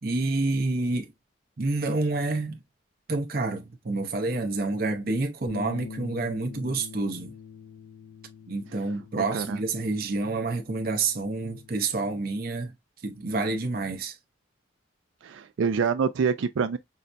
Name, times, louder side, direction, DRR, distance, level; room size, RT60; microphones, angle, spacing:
voice 1, 0.0-1.1 1.6-2.6 3.1-7.3 8.5-12.7 13.0-14.2, right 3 dB, 50° right, 0.7 m, -28 dB
sound 1, 5.5-11.7, left 5 dB, 80° left, 0.4 m, -44 dB
voice 2, 9.2-9.6 15.2-16.8, right 6 dB, 85° right, 0.4 m, -26 dB
5.5 x 2.2 x 2.5 m
head